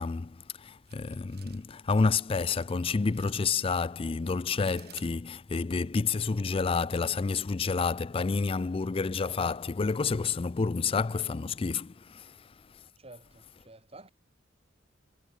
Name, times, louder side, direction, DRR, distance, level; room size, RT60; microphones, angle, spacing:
voice 1, 0.0-12.9, left 4 dB, 30° left, 0.4 m, -29 dB
sound 1, 0.9-5.8, right 11 dB, 55° right, 5.0 m, -55 dB
voice 2, 13.0-14.1, right 2 dB, 30° right, 5.7 m, -51 dB
head